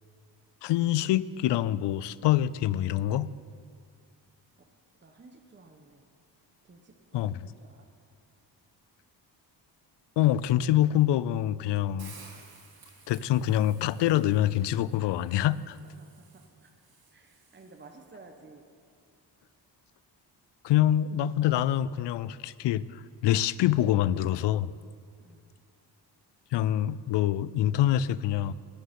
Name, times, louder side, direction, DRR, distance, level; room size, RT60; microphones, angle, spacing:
voice 1, 0.6-3.3 7.1-7.5 10.2-12.1 13.1-15.8 20.6-24.7 26.5-28.5, left 12 dB, 70° left, 19 dB, 0.5 m, -25 dB
voice 2, 5.0-6.1 6.6-7.3 7.6-7.9 15.7-16.7 17.1-18.7 25.2-25.5, right 3 dB, 25° right, 3 dB, 1.2 m, -54 dB
Hiss, 12.0-18.1, right 5 dB, 55° right, 2.2 m, -55 dB
13.0 x 6.8 x 9.3 m, 2.2 s
cardioid pair, 80°, 43 cm